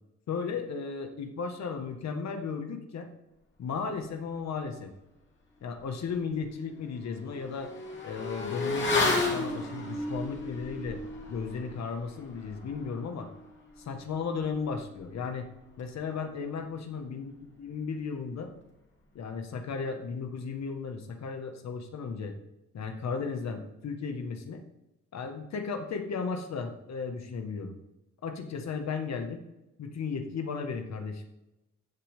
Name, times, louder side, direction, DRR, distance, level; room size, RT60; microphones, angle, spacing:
voice 1, 0.3-3.1 3.6-4.9 5.6-7.7 8.0-11.0 11.3-13.3 13.8-15.5 15.8-17.3 17.6-18.5 19.1-22.4 22.7-24.6 25.1-27.8 28.2-29.4 29.8-31.2, left 5 dB, 60° left, 5 dB, 1.7 m, -35 dB
Motorcycle / Accelerating revving vroom, 5.8-5.9 6.3-16.3 16.5-16.7, left 2 dB, 40° left, 2.9 m, -34 dB
15.0 x 7.6 x 3.7 m, 0.93 s
cardioid pair, 90°, 30 cm